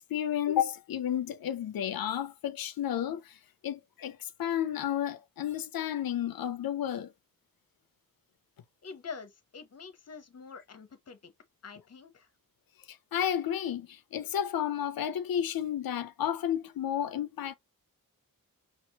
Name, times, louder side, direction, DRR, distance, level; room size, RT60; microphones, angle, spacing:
voice 1, 0.0-7.1 12.9-17.5, left 10 dB, 85° left, 0.5 m, -32 dB
voice 2, 8.8-11.3 11.6-12.3, left 5 dB, 45° left, 0.8 m, -46 dB
5.9 x 2.5 x 2.8 m
wide cardioid pair, 175°, 34 cm